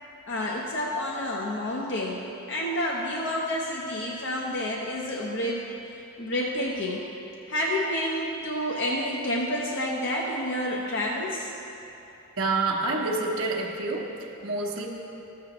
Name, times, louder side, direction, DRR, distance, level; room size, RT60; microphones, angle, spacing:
voice 1, 0.3-5.6 6.2-7.1 7.5-11.5, left 1 dB, 55° left, -3 dB, 0.7 m, -29 dB
voice 2, 12.4-14.9, right 3 dB, 65° right, -3 dB, 0.9 m, -28 dB
13.0 x 7.5 x 3.0 m, 2.9 s
head